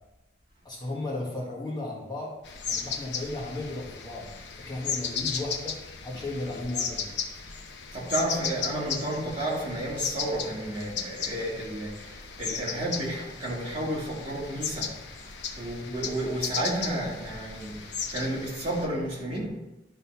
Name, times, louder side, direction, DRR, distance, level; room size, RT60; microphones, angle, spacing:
voice 1, 0.6-2.4 2.7-7.1 15.8-15.9, left 2 dB, 25° left, -3 dB, 1.5 m, -35 dB
sound 1, 2.4-18.8, left 6 dB, 75° left, 0.9 m, -36 dB
voice 2, 7.9-19.5, right 1 dB, 35° right, -5 dB, 2.7 m, -32 dB
11.5 x 3.9 x 5.7 m, 0.99 s
head